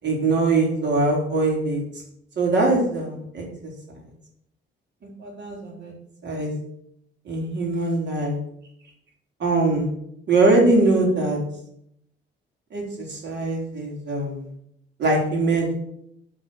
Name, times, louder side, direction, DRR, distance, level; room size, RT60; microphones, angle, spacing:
voice 1, 0.0-1.8 2.4-3.4 5.2-5.9 6.2-6.5 7.3-8.4 9.4-9.9 10.3-11.4 12.7-14.5 15.0-15.7, right 2 dB, 60° right, -1 dB, 3.9 m, -22 dB
9.9 x 5.4 x 6.2 m, 0.75 s
cardioid pair, 90°, 20 cm